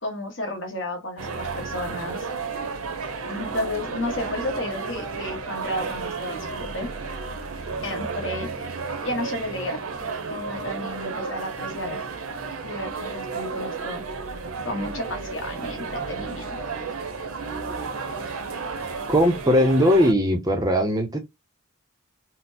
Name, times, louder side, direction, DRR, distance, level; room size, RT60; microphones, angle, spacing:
voice 1, 0.0-2.2 3.3-6.9 7.8-8.5 9.0-9.8 10.3-12.0 12.6-14.0 14.6-16.5, left 1 dB, 60° left, 1.0 m, -32 dB
sound 1, 1.2-20.1, right 4 dB, 75° right, 0.7 m, -32 dB
voice 2, 19.1-21.2, equal, 15° right, 0.6 m, -19 dB
4.1 x 2.0 x 2.6 m
head